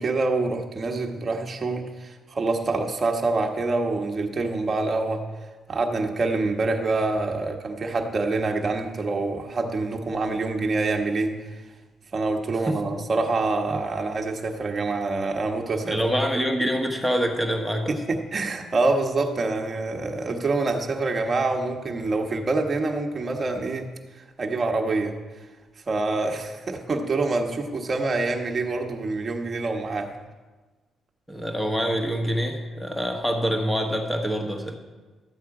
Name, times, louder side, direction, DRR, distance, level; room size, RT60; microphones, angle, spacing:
voice 1, 0.0-5.2 5.7-11.5 12.1-16.0 17.9-23.9 24.1-25.1 25.9-30.1, right 3 dB, 30° right, 2 dB, 1.2 m, -26 dB
voice 2, 15.8-18.0 31.3-34.8, equal, 5° left, 3 dB, 1.3 m, -25 dB
12.0 x 8.3 x 4.8 m, 1.3 s
cardioid pair, 125°, 0 cm